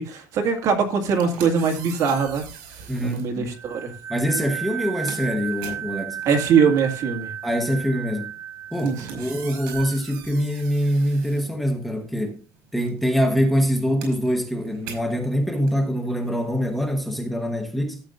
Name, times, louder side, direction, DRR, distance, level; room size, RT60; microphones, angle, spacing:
voice 1, 0.0-2.4 3.0-3.9 6.3-7.3 8.8-9.2, right 6 dB, 50° right, 2.0 m, -22 dB
sound 1, 0.9-3.3 4.2-4.4 4.7-12.2 12.5-17.2, right 6 dB, 85° right, 5.0 m, -41 dB
voice 2, 2.9-3.5 4.1-6.2 7.4-8.3 8.7-12.4 12.7-18.0, equal, ahead, 1.1 m, -24 dB
sound 2, 3.5-10.0, right 9 dB, 25° right, 0.6 m, -35 dB
13.5 x 8.2 x 2.6 m
cardioid pair, 170°, 8 cm